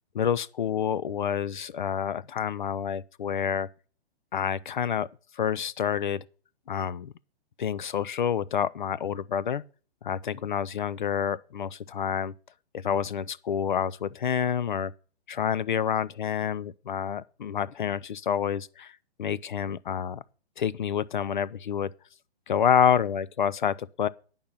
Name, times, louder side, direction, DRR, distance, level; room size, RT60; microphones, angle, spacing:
voice 1, 0.1-3.7 4.3-5.1 5.3-6.2 6.7-7.1 7.6-9.6 10.0-12.3 12.7-14.9 15.3-18.9 19.2-20.2 20.6-21.9 22.5-24.1, left 8 dB, 50° left, 0.6 m, -28 dB
10.5 x 5.5 x 8.6 m
hypercardioid pair, 170°, 32 cm